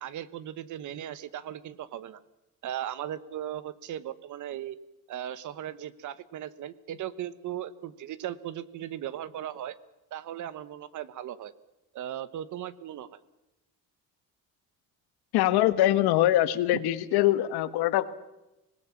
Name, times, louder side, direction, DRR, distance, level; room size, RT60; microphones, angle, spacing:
voice 1, 0.0-2.2 2.6-4.8 5.1-9.8 10.1-11.5 11.9-13.1 16.7-16.8, right 11 dB, 50° right, 17 dB, 1.2 m, -37 dB
voice 2, 15.3-18.1, left 14 dB, 85° left, 13 dB, 1.5 m, -23 dB
25.5 x 19.5 x 7.2 m, 0.98 s
cardioid pair, 155°, 37 cm